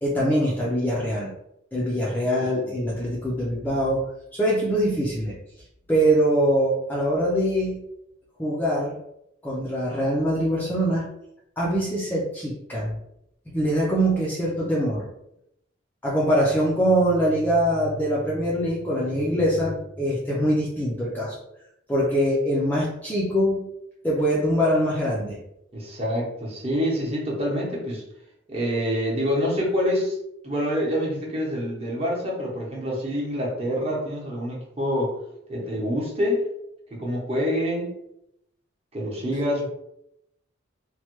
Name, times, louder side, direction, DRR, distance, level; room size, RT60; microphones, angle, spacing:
voice 1, 0.0-1.3 1.7-5.4 5.9-7.8 8.4-9.0 9.4-11.1 11.6-13.0 13.5-15.1 16.0-21.4 21.9-23.7 24.0-25.4, equal, 10° left, -6 dB, 0.5 m, -23 dB
voice 2, 2.4-2.8 25.7-28.0 28.5-30.2 30.4-35.1 35.5-36.4 36.9-38.0 38.9-39.7, equal, 30° right, -3 dB, 0.9 m, -26 dB
3.1 x 2.2 x 3.0 m, 0.80 s
head